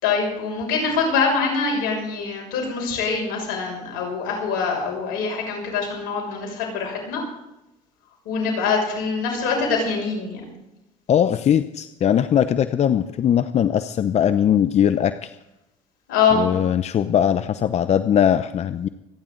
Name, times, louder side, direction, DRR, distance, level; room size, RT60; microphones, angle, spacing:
voice 1, 0.0-7.2 8.2-10.4 16.1-16.5, left 5 dB, 80° left, 0 dB, 6.4 m, -24 dB
voice 2, 11.1-15.3 16.3-18.9, left 9 dB, 45° left, 12 dB, 0.7 m, -20 dB
27.0 x 10.5 x 3.9 m, 0.91 s
supercardioid pair, 80°, 15 cm